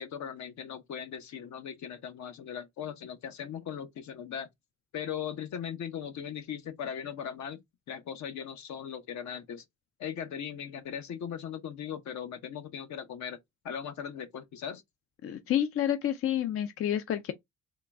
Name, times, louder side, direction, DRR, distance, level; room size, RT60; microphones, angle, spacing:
voice 1, 0.0-4.5 4.9-7.6 7.9-9.6 10.0-13.4 13.6-14.8, left 8 dB, 70° left, 0.9 m, -38 dB
voice 2, 15.2-17.3, left 10 dB, 50° left, 0.5 m, -29 dB
3.7 x 2.3 x 3.5 m
cardioid pair, 90°, 30 cm